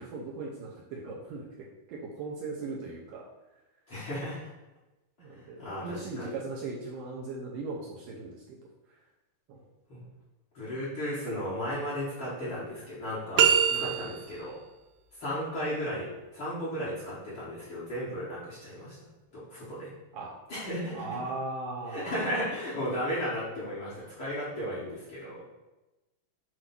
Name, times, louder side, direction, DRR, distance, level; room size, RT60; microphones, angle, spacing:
voice 1, 0.0-1.5 1.9-3.3 5.2-9.0 9.5-9.6 13.7-14.0 20.1-20.3 20.9-22.2, right 3 dB, 75° right, -3 dB, 2.1 m, -38 dB
voice 2, 3.9-4.5 5.6-6.4 9.9-10.0 10.5-14.6 15.2-19.0 19.3-19.9 20.5-21.1 21.9-25.5, equal, 45° left, -10 dB, 2.0 m, -35 dB
sound 1, 13.4-14.5, right 8 dB, 90° right, 2.6 m, -23 dB
7.7 x 2.7 x 5.9 m, 1.0 s
omnidirectional pair, 4.5 m